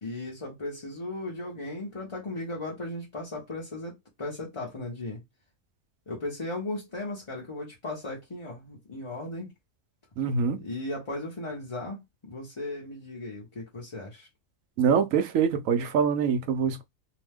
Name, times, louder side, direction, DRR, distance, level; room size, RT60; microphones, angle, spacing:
voice 1, 0.0-5.2 6.1-9.5 10.5-14.3, left 2 dB, 30° left, 0.7 m, -36 dB
voice 2, 10.2-10.6 14.8-16.8, right 6 dB, 65° right, 0.9 m, -24 dB
2.8 x 2.1 x 3.3 m
omnidirectional pair, 1.6 m